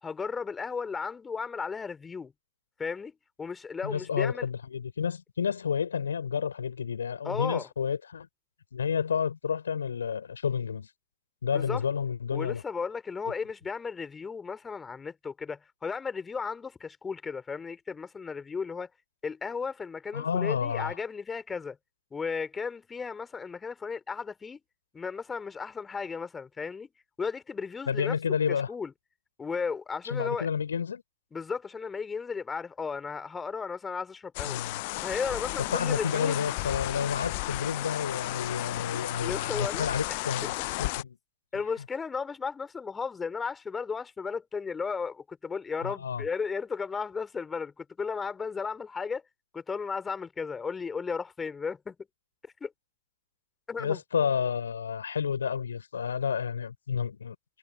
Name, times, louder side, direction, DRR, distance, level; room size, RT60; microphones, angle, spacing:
voice 1, 0.0-2.3 2.8-3.1 3.4-4.5 7.2-7.7 11.5-11.8 12.3-18.9 19.2-21.8 22.1-24.6 24.9-26.9 27.2-28.1 28.5-28.9 29.4-30.5 31.3-34.6 35.0-36.4 38.9-40.5 41.5-49.2 49.5-51.9 52.6-52.7 53.7-54.0, left 5 dB, 15° left, 3.1 m, -35 dB
voice 2, 3.8-8.3 8.7-10.9 11.4-12.6 20.1-21.0 27.9-28.7 30.1-31.0 34.4-34.8 35.7-40.5 40.8-41.2 45.8-46.2 53.8-57.4, left 7 dB, 70° left, 4.0 m, -30 dB
sound 1, 34.3-41.0, left 25 dB, 50° left, 0.7 m, -34 dB
figure-of-eight pair, 90°, 0 cm